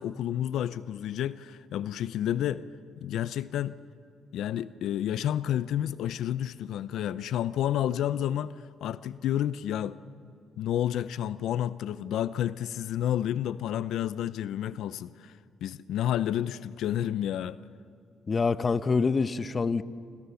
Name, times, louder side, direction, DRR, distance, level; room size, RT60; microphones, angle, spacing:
voice 1, 0.0-2.6 3.0-3.8 4.3-10.0 10.6-15.3 15.6-17.6, left 11 dB, 80° left, 0.5 m, -30 dB
voice 2, 18.3-19.8, left 4 dB, 35° left, 0.9 m, -26 dB
28.5 x 26.0 x 7.0 m
cardioid pair, 90°, 0 cm